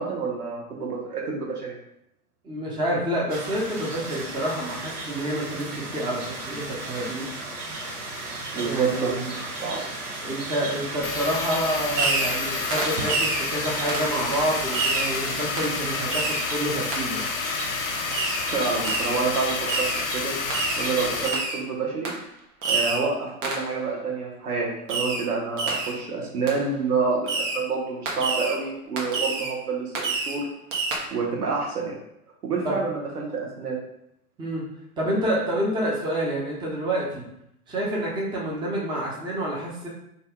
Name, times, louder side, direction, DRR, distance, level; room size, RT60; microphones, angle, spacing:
voice 1, 0.0-1.7 8.5-9.2 9.6-9.8 18.4-19.9 20.1-20.3 20.8-22.1 22.7-29.9 30.3-30.4 31.1-31.9 32.4-33.8, right 4 dB, 80° right, -2 dB, 1.0 m, -28 dB
voice 2, 2.4-7.3 8.5-9.4 10.2-17.2 32.6-32.8 34.4-34.7 35.0-37.2 37.7-39.9, right 1 dB, 10° right, -3 dB, 0.6 m, -28 dB
sound 1, 3.3-21.4, right 2 dB, 40° right, 1.1 m, -34 dB
sound 2, 11.0-21.3, left 6 dB, 65° left, 0.6 m, -30 dB
Fireworks, 11.9-12.4 12.7-13.5 13.9-14.1 14.7-15.2 15.6-15.8 16.1-16.5 16.9-17.0 18.1-18.5 18.8-19.2 19.7-20.0 20.5-20.9 21.2-21.6 22.0-22.2 22.6-23.1 23.4-23.7 24.9-25.3 25.6-26.0 26.5-26.6 27.3-27.6 28.1-28.6 29.0-29.5 29.9-30.4 30.7-31.0, right 3 dB, 55° right, 0.9 m, -27 dB
2.6 x 2.3 x 3.6 m, 0.78 s
figure-of-eight pair, 95°, 45 cm